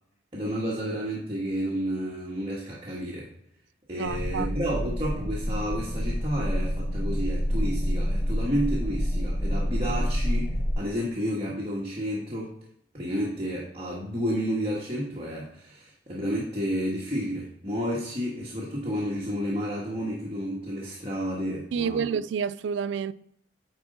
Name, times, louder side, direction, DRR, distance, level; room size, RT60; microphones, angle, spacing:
voice 1, 0.3-3.3 3.9-12.5 12.9-22.1, equal, 30° right, 1.4 m, -31 dB
voice 2, 4.0-4.5 21.7-23.1, right 7 dB, 80° right, 0.3 m, -29 dB
sound 1, 4.1-10.7, equal, 55° left, 2.3 m, -28 dB
9.6 x 4.3 x 3.8 m
head